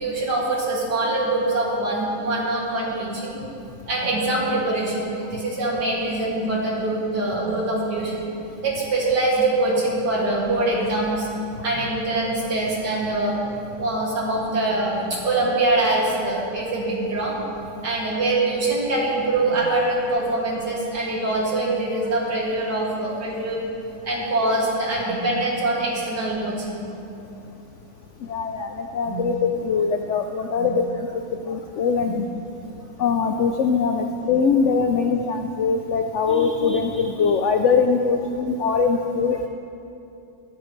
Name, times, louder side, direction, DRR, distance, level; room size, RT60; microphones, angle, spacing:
voice 1, 0.0-3.4 3.9-8.3 8.6-11.3 11.6-13.4 13.8-17.4 17.8-23.6 24.0-26.8 29.0-29.2 30.6-30.7 32.6-32.7, right 2 dB, 75° right, -5 dB, 3.0 m, -24 dB
voice 2, 28.3-32.3 33.0-39.5, left 5 dB, 75° left, 5 dB, 0.6 m, -22 dB
14.5 x 12.0 x 3.2 m, 2.8 s
omnidirectional pair, 1.8 m